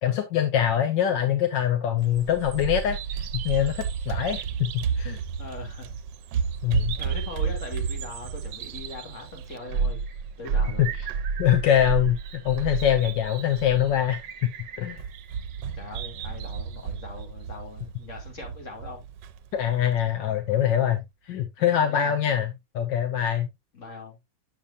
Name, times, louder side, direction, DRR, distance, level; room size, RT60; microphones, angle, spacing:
voice 1, 0.0-5.2 6.6-6.9 10.8-10.9 11.4-14.2 14.8-15.0 19.5-23.5, left 10 dB, 75° left, 1.5 m, -24 dB
Bird vocalization bird call bird song, 2.0-20.1, right 6 dB, 75° right, 1.2 m, -32 dB
voice 2, 5.4-6.0 7.0-10.0 10.4-10.9 15.7-19.1 21.6-22.2 23.7-24.2, left 3 dB, 40° left, 2.8 m, -40 dB
8.6 x 6.9 x 2.5 m
omnidirectional pair, 2.0 m